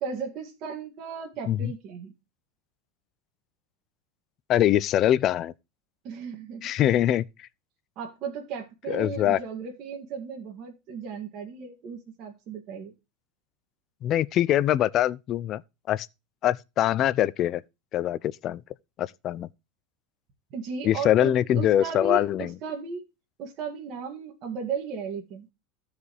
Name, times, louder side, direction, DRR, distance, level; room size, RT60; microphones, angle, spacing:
voice 1, 0.0-2.1 6.0-6.7 8.0-12.9 20.5-23.0 23.4-25.5, right 5 dB, 50° right, 2.0 m, -35 dB
voice 2, 4.5-5.5 6.6-7.5 8.9-9.4 14.0-15.6 15.9-16.1 16.4-17.6 17.9-18.6 19.0-19.5 20.8-22.5, left 12 dB, 45° left, 0.5 m, -23 dB
14.0 x 4.9 x 3.2 m
hypercardioid pair, 105°, 0 cm